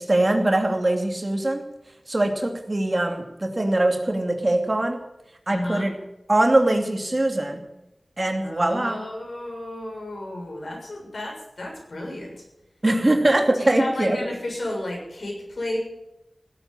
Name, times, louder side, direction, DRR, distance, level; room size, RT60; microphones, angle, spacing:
voice 1, 0.0-1.6 2.1-5.0 5.5-5.9 6.3-7.6 8.2-9.0 12.8-14.2, right 1 dB, 40° right, 4 dB, 2.7 m, -22 dB
voice 2, 5.5-5.9 8.4-12.4 13.5-15.8, left 1 dB, 75° left, -1 dB, 6.9 m, -32 dB
18.0 x 8.2 x 9.7 m, 0.89 s
wide cardioid pair, 50°, 0 cm